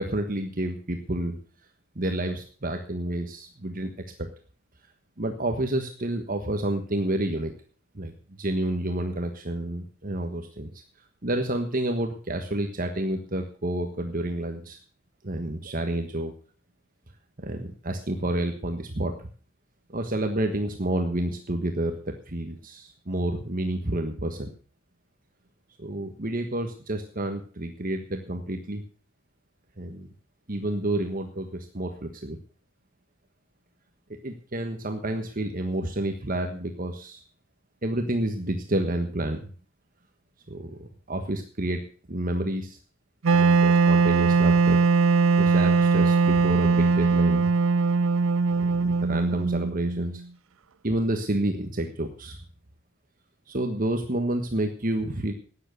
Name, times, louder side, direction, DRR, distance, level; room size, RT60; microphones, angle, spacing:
voice 1, 0.0-1.4 1.9-3.9 4.2-4.3 5.2-7.5 7.9-8.1 8.4-10.8 11.2-14.8 15.2-16.3 17.4-19.3 19.9-24.5 25.8-28.8 29.8-30.1 30.5-32.4 34.2-37.2 37.8-39.5 40.5-41.8 42.1-42.8 43.3-44.8 45.4-47.5 48.6-50.2 50.8-52.4 53.5-55.3, right 1 dB, 40° right, 5 dB, 1.4 m, -29 dB
Wind instrument woodwind instrument, 43.2-50.2, right 4 dB, 75° right, 0.5 m, -20 dB
13.0 x 9.3 x 6.7 m, 0.41 s
head